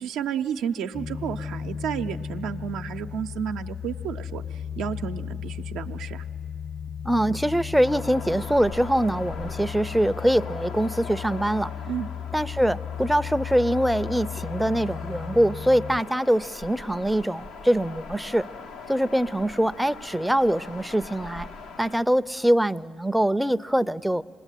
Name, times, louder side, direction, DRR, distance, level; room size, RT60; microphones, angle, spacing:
voice 1, 0.0-6.2 11.9-12.1, right 8 dB, 85° right, 5 dB, 0.7 m, -31 dB
sound 1, 0.9-16.0, left 8 dB, 40° left, 0.9 m, -35 dB
voice 2, 7.0-11.7 12.3-18.5 18.9-21.5 21.8-24.2, right 1 dB, 5° right, 13 dB, 0.5 m, -23 dB
sound 2, 7.8-22.0, left 4 dB, 85° left, 1.2 m, -41 dB
26.5 x 20.5 x 9.1 m, 2.4 s
supercardioid pair, 60°, 0 cm